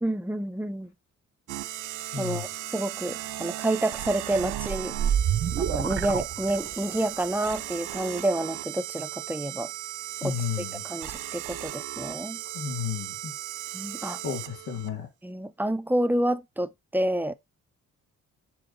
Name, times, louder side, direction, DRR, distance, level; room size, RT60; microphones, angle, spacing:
voice 1, 0.0-0.9 2.2-5.0 5.6-9.7 10.2-10.3 10.8-12.4 13.7-14.2 15.2-17.3, right 1 dB, 5° right, 0.6 m, -29 dB
sound 1, 1.5-14.9, right 13 dB, 90° right, 0.8 m, -36 dB
voice 2, 2.1-2.4 10.2-10.8 12.5-13.3 14.2-15.1, left 7 dB, 85° left, 3.0 m, -32 dB
sound 2, 4.3-7.0, right 9 dB, 45° right, 0.7 m, -28 dB
7.7 x 4.0 x 4.0 m
cardioid pair, 90°, 30 cm